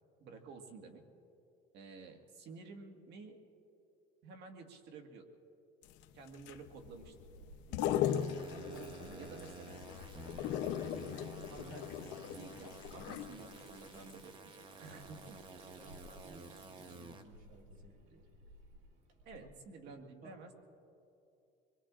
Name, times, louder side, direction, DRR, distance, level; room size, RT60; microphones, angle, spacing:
voice 1, 0.2-1.0 1.7-3.4 4.2-5.3 6.1-7.1 9.2-9.9 11.5-11.9 12.3-15.4 17.7-17.8 19.3-20.5, right 4 dB, 65° right, 4 dB, 1.7 m, -52 dB
sound 1, 5.8-13.8 14.1-14.2, left 10 dB, 80° left, 0.7 m, -38 dB
Water tap faucet / Sink (filling or washing), 6.8-19.4, right 2 dB, 85° right, 2.1 m, -58 dB
voice 2, 7.7-8.1 8.5-9.3 15.7-18.2 19.4-19.5 19.8-20.4, right 2 dB, 50° right, 2 dB, 4.1 m, -56 dB
sound 2, 8.0-17.2, right 3 dB, 25° right, 0.9 m, -53 dB
26.5 x 22.0 x 2.5 m, 2.7 s
cardioid pair, 110°, 19 cm